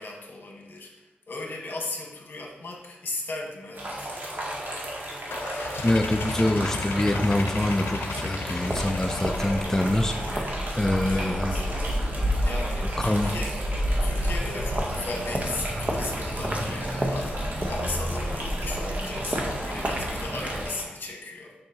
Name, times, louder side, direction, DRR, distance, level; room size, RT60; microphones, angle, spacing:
voice 1, 0.0-4.1 11.0-11.6 12.4-13.5 14.0-21.5, left 2 dB, 65° left, -1 dB, 1.4 m, -36 dB
sound 1, 3.7-20.8, right 1 dB, 55° right, 1.7 m, -35 dB
sound 2, 5.3-10.8, left 4 dB, 85° left, 0.7 m, -34 dB
voice 2, 5.8-11.6 13.0-13.3, left 1 dB, 10° left, 4 dB, 0.4 m, -25 dB
sound 3, 8.7-20.6, equal, 35° right, 1.0 m, -30 dB
6.6 x 5.5 x 2.8 m, 1.1 s
cardioid pair, 60°, 4 cm